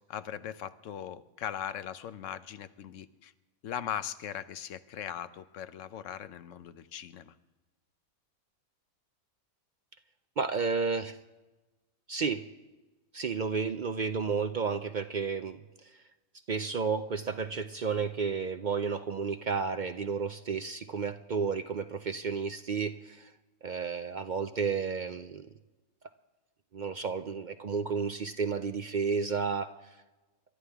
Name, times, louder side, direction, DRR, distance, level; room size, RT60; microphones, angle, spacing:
voice 1, 0.1-3.3 3.6-7.3, left 10 dB, 65° left, 13 dB, 1.1 m, -39 dB
voice 2, 10.4-11.2 12.1-12.5 13.1-15.9 16.5-23.3 23.6-25.5 26.7-29.9, right 5 dB, 60° right, 9 dB, 0.5 m, -32 dB
28.0 x 13.0 x 3.5 m, 1.2 s
omnidirectional pair, 1.5 m